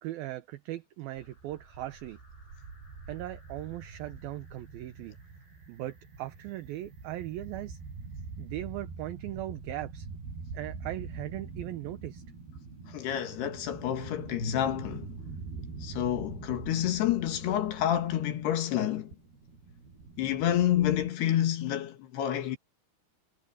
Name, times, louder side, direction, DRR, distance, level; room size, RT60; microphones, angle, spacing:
voice 1, 0.0-2.2 3.1-5.2 5.7-7.8 8.4-10.1 10.5-12.2, right 15 dB, 75° right, 2.3 m, -39 dB
sound 1, 1.2-21.1, right 4 dB, 60° right, 8.3 m, -44 dB
voice 2, 12.9-15.1 15.8-19.1 20.2-22.6, left 11 dB, 70° left, 3.5 m, -29 dB
omnidirectional pair, 5.2 m